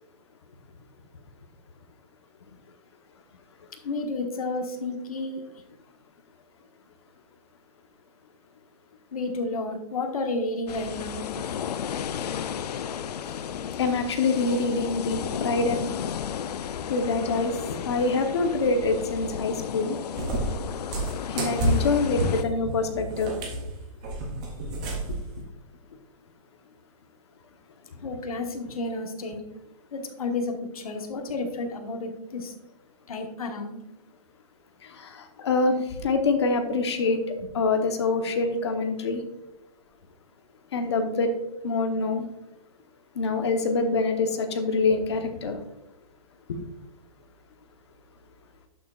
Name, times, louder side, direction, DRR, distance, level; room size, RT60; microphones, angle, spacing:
voice 1, 3.8-5.4 9.1-11.3 28.0-29.4 29.9-32.5 33.1-33.8 37.4-37.5, left 2 dB, 65° left, 3 dB, 1.5 m, -31 dB
sound 1, 10.7-22.4, left 8 dB, 85° left, 0.5 m, -33 dB
voice 2, 13.8-15.9 16.9-17.6 17.8-20.0 21.3-23.3 34.8-37.2 37.5-39.2 40.7-41.3 41.6-42.3 43.1-45.6 46.5-46.6, left 3 dB, 45° left, 6 dB, 1.0 m, -25 dB
Cat, 20.2-25.3, right 1 dB, 10° right, 0.5 m, -29 dB
11.0 x 6.6 x 2.4 m, 0.95 s
hypercardioid pair, 180°, 20 cm